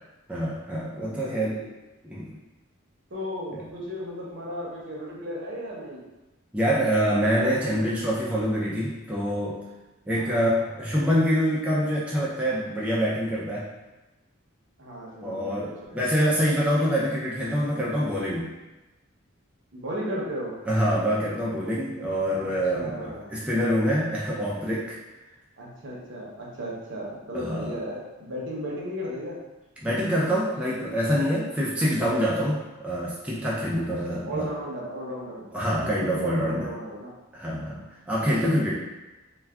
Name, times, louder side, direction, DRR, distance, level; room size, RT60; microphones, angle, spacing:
voice 1, 0.3-1.6 2.0-2.3 3.5-3.6 6.5-9.6 10.1-13.7 15.2-18.5 20.7-25.0 27.5-27.7 29.8-34.5 35.5-36.7 37.3-38.8, equal, 5° right, -7 dB, 0.4 m, -25 dB
voice 2, 1.1-1.7 3.1-6.0 10.1-10.6 14.8-16.4 19.7-20.5 22.2-23.4 25.6-29.4 33.7-35.4 35.8-37.1 38.2-38.4, equal, 60° right, -4 dB, 0.7 m, -36 dB
2.2 x 2.2 x 3.4 m, 1.1 s
head